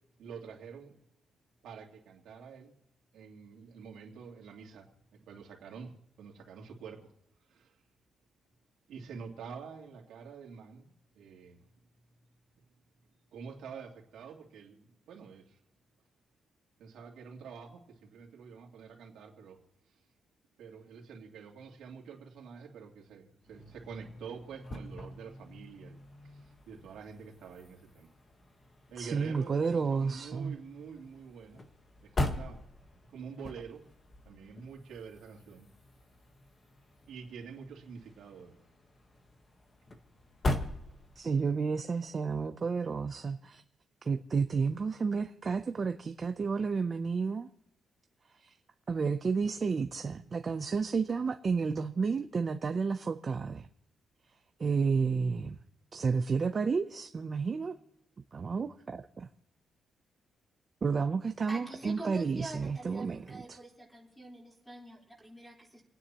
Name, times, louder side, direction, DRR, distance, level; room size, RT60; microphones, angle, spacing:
voice 1, 0.2-1.0 1.6-2.7 3.1-7.1 7.5-7.7 8.9-11.7 13.3-15.6 16.8-19.6 20.6-26.0 26.2-28.1 28.9-31.6 32.0-32.6 33.1-33.9 34.2-35.7 37.1-38.6, right 6 dB, 90° right, 2.6 m, -47 dB
sound 1, 23.4-41.5, left 1 dB, 25° left, 1.2 m, -41 dB
voice 2, 29.0-30.5 41.2-43.6 44.0-47.5 48.4-48.5 48.9-53.7 54.6-55.6 55.9-57.7 58.3-59.3 60.8-63.4, right 5 dB, 30° right, 0.5 m, -31 dB
voice 3, 61.5-65.8, right 1 dB, 5° left, 3.9 m, -46 dB
29.0 x 9.7 x 2.9 m
wide cardioid pair, 170°, 0 cm